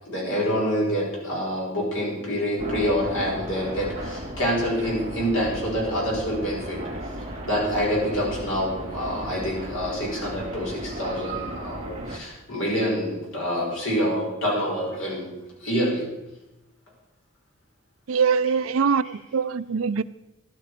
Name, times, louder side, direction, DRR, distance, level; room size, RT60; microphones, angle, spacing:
voice 1, 0.0-6.8 7.4-15.4 15.6-16.1, equal, 70° left, 5.7 m, -26 dB
sound 1, 2.6-12.2, right 1 dB, 35° right, 2.6 m, -35 dB
voice 2, 18.1-20.0, right 6 dB, 80° right, 0.5 m, -23 dB
13.0 x 11.5 x 5.1 m
head